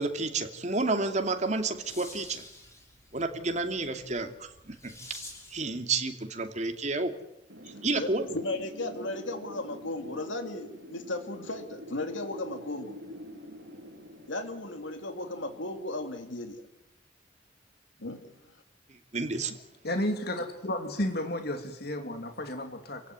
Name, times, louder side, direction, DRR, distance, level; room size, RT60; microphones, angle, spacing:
voice 1, 0.0-2.4 3.1-4.3 4.7-4.9 5.5-7.1 7.8-8.2 19.1-19.6, right 3 dB, 40° right, 5 dB, 2.8 m, -30 dB
Lasers Crescendo & Decrescendo, 1.3-5.7, left 2 dB, 15° left, 6.7 m, -49 dB
Wind, 7.5-16.2, equal, 70° right, 3.6 m, -47 dB
voice 2, 8.0-13.0 14.3-16.6 18.0-18.2, left 2 dB, 85° left, 6 dB, 2.9 m, -35 dB
voice 3, 19.8-23.0, left 1 dB, 55° left, 5 dB, 2.9 m, -32 dB
29.0 x 16.5 x 9.5 m, 0.86 s
head